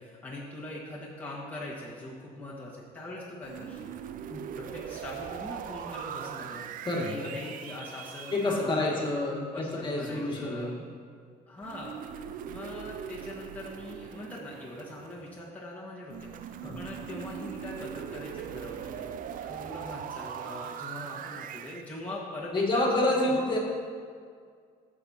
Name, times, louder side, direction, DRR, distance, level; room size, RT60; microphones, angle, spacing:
voice 1, 0.0-3.9 4.5-9.0 9.5-10.8 11.5-12.0 12.5-19.1 19.5-23.4, left 1 dB, 10° left, -7 dB, 1.5 m, -42 dB
sound 1, 3.4-8.5 11.6-15.4 16.1-21.9, right 9 dB, 55° right, 0.4 m, -40 dB
voice 2, 6.8-7.3 8.3-10.8 16.6-16.8 19.4-19.5 22.5-23.6, left 2 dB, 30° left, -3 dB, 1.9 m, -28 dB
12.0 x 7.5 x 2.8 m, 2.1 s
cardioid pair, 110°, 17 cm